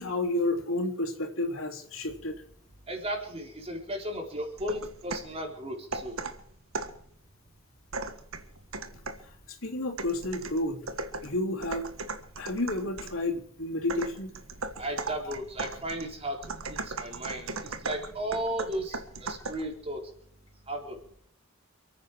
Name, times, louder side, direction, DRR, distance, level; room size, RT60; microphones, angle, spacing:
voice 1, 0.0-2.4 9.2-10.9 11.2-11.9 12.4-14.3, left 2 dB, 75° left, 1 dB, 3.5 m, -31 dB
voice 2, 2.9-6.2 14.8-20.1 20.7-21.0, right 1 dB, 30° right, 2 dB, 3.8 m, -35 dB
sound 1, 4.6-5.4 5.9-7.1 7.9-9.3 10.0-13.2 13.9-19.7, right 3 dB, 85° right, 1.5 m, -38 dB
28.5 x 9.6 x 4.8 m, 0.65 s
head